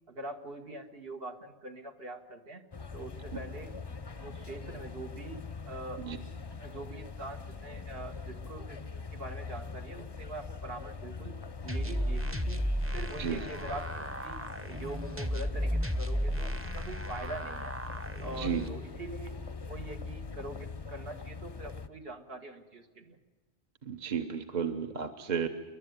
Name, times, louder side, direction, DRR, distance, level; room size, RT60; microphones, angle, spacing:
voice 1, 0.1-2.6 2.9-3.7 4.2-6.1 6.6-8.8 9.1-11.4 11.6-12.6 12.9-13.9 14.2-14.4 14.7-17.7 18.2-19.4 19.6-23.2, right 2 dB, 65° right, 4 dB, 1.9 m, -43 dB
sound 1, 2.7-21.9, left 4 dB, 30° left, 0.6 m, -42 dB
sound 2, 11.7-18.7, equal, 15° right, 0.8 m, -34 dB
voice 2, 23.8-25.5, right 7 dB, 45° right, 7 dB, 1.0 m, -33 dB
29.0 x 11.5 x 9.4 m, 1.3 s
omnidirectional pair, 1.1 m